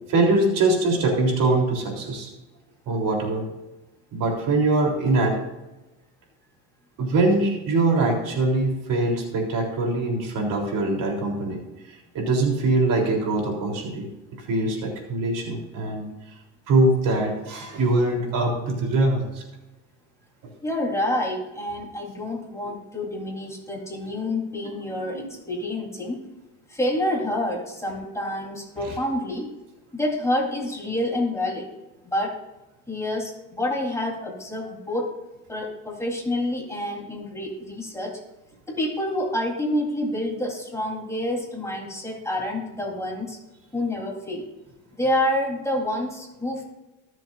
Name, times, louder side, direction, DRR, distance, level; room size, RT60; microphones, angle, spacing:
voice 1, 0.1-2.3 2.9-3.5 4.1-5.4 7.0-11.6 12.1-14.1 14.5-16.1 16.7-19.4 25.0-25.3 28.9-29.0, right 2 dB, 60° right, 0 dB, 3.7 m, -23 dB
voice 2, 20.6-26.2 26.7-29.5 29.9-31.7 32.0-32.4 32.9-35.2 35.5-38.2 38.7-43.4 43.7-44.4 44.9-46.6, left 1 dB, 10° left, -2 dB, 3.9 m, -28 dB
21.5 x 7.6 x 2.6 m, 1.0 s
supercardioid pair, 100°, 38 cm